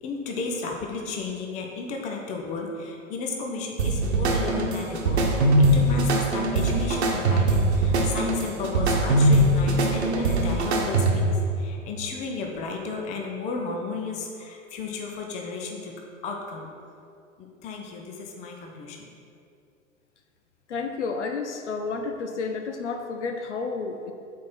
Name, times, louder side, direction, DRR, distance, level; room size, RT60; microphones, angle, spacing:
voice 1, 0.0-15.9 16.2-16.7 17.4-19.1, left 3 dB, 20° left, 1 dB, 0.6 m, -33 dB
sound 1, 3.8-11.4, right 1 dB, 55° right, 1.1 m, -21 dB
voice 2, 20.7-24.1, left 4 dB, 60° left, 5 dB, 0.7 m, -31 dB
7.2 x 4.6 x 4.3 m, 2.5 s
figure-of-eight pair, 105°, 39 cm